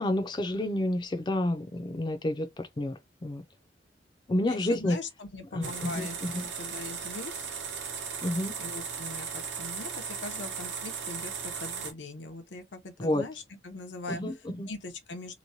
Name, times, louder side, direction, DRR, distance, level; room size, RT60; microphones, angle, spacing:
voice 1, 0.0-3.4 4.3-5.0 5.5-6.5 8.2-8.5 13.0-13.2 14.1-14.7, left 1 dB, 25° left, 0.4 m, -30 dB
voice 2, 4.5-7.5 8.6-14.2 14.7-15.4, left 3 dB, 85° left, 0.8 m, -41 dB
sound 1, 5.6-11.9, right 6 dB, 80° right, 0.9 m, -37 dB
3.0 x 2.2 x 2.6 m
head